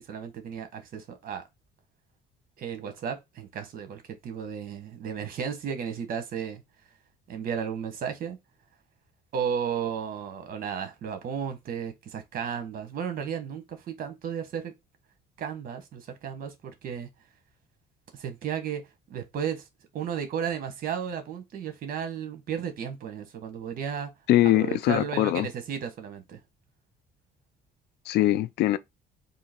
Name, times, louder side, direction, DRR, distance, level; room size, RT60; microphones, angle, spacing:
voice 1, 0.0-1.4 2.6-6.6 7.3-8.4 9.3-14.7 15.4-17.1 18.1-19.6 19.9-24.1 24.4-26.4, right 7 dB, 60° right, 1.2 m, -34 dB
voice 2, 24.3-25.5 28.1-28.8, left 14 dB, 75° left, 0.4 m, -22 dB
3.8 x 2.8 x 4.3 m
cardioid pair, 110°, 17 cm